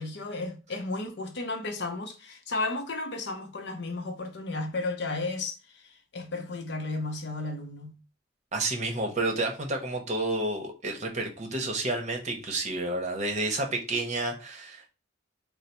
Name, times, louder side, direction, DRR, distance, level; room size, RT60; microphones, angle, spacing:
voice 1, 0.0-8.0, left 2 dB, 60° left, 0.7 m, -34 dB
voice 2, 8.5-14.9, right 2 dB, 35° right, 0.8 m, -30 dB
3.9 x 2.0 x 4.3 m
head